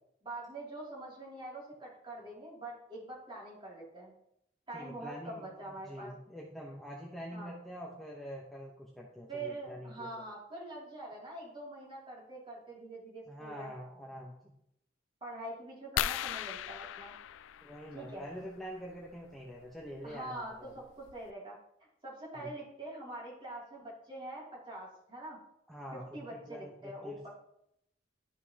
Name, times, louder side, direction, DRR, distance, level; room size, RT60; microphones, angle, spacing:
voice 1, 0.2-4.1 4.7-6.1 7.3-7.5 9.3-13.7 15.2-17.1 17.9-18.2 20.0-21.6 22.0-25.4 25.9-27.3, right 2 dB, 25° right, -4 dB, 2.7 m, -44 dB
voice 2, 4.7-10.2 13.3-14.5 17.6-20.7 22.3-22.5 25.7-27.3, equal, ahead, -3 dB, 0.9 m, -45 dB
sound 1, 16.0-18.3 19.9-20.1 20.7-20.8 21.1-21.3, left 10 dB, 85° left, 0.3 m, -37 dB
12.0 x 5.3 x 2.9 m, 0.75 s
head